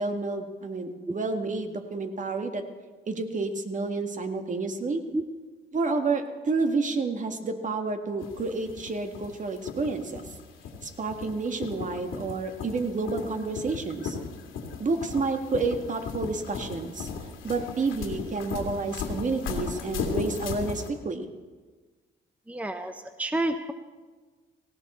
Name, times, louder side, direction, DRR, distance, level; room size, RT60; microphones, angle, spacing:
voice 1, 0.0-2.6 3.1-5.0 5.7-10.2 10.8-14.2 14.8-17.1 17.4-21.3, right 3 dB, 40° right, 6 dB, 1.8 m, -30 dB
sound 1, 8.2-20.9, left 5 dB, 90° left, 2.5 m, -36 dB
voice 2, 22.5-23.7, right 1 dB, 5° right, 8 dB, 0.8 m, -30 dB
18.5 x 17.5 x 4.3 m, 1.4 s
cardioid pair, 90°, 20 cm